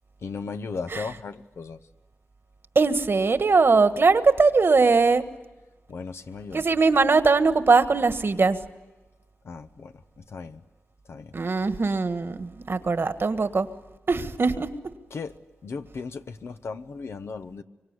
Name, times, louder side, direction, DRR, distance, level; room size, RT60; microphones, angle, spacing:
voice 1, 0.2-1.8 5.9-6.6 9.4-10.6 11.1-11.4 15.1-15.3 15.6-17.6, left 4 dB, 80° left, 9 dB, 1.0 m, -36 dB
voice 2, 2.7-5.3 6.5-8.6 11.3-13.7 14.1-14.9, right 4 dB, 60° right, 10 dB, 1.5 m, -21 dB
25.0 x 24.5 x 9.7 m, 1.1 s
cardioid pair, 50°, 4 cm